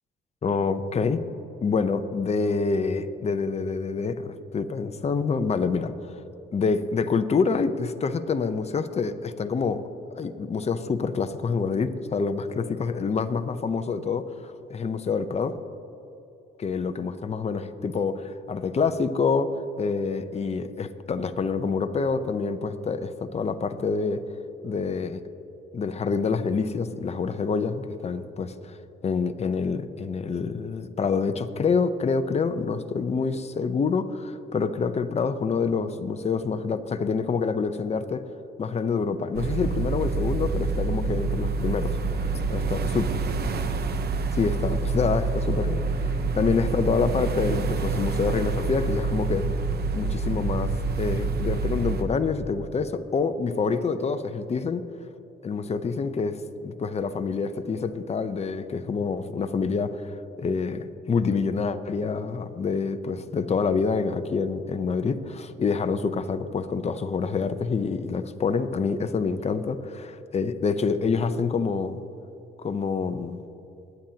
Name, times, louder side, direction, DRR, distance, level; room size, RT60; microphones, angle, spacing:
voice 1, 0.4-1.2 1.6-6.1 6.5-9.8 10.2-15.5 16.6-19.5 19.8-24.2 24.6-25.2 25.7-28.7 29.0-38.2 38.6-42.0 42.5-43.1 44.3-49.5 49.9-54.8 55.4-72.0 72.6-73.4, left 5 dB, 35° left, 9 dB, 0.7 m, -27 dB
sound 1, 39.3-52.0, right 4 dB, 55° right, 0.9 m, -27 dB
20.5 x 9.1 x 2.9 m, 2.8 s
cardioid pair, 90°, 20 cm